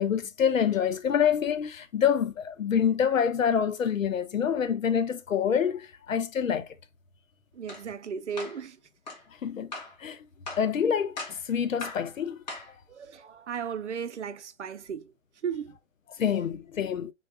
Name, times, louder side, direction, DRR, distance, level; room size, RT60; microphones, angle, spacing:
voice 1, 0.0-6.7 9.4-9.7 10.0-10.2 10.6-12.8 16.2-17.1, left 8 dB, 90° left, 0.8 m, -26 dB
voice 2, 7.5-8.8 12.9-15.1 15.4-15.7, right 7 dB, 65° right, 0.6 m, -35 dB
sound 1, 7.7-7.8 8.4-8.6 9.1-9.2 9.7-10.0 10.5-10.7 11.2-11.4 11.8-12.1 12.5-12.7, left 3 dB, 35° left, 1.1 m, -39 dB
3.7 x 2.4 x 3.3 m
hypercardioid pair, 175°, 38 cm